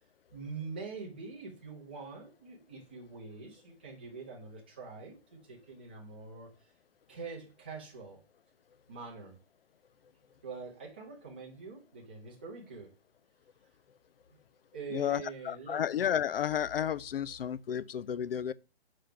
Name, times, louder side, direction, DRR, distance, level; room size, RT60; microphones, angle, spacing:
voice 1, 0.3-6.5 7.1-8.2 8.9-9.4 10.4-12.9 14.7-15.8, right 4 dB, 10° right, 0.6 m, -44 dB
voice 2, 14.9-18.5, left 9 dB, 65° left, 0.5 m, -32 dB
5.0 x 3.6 x 5.6 m
hypercardioid pair, 175°, 31 cm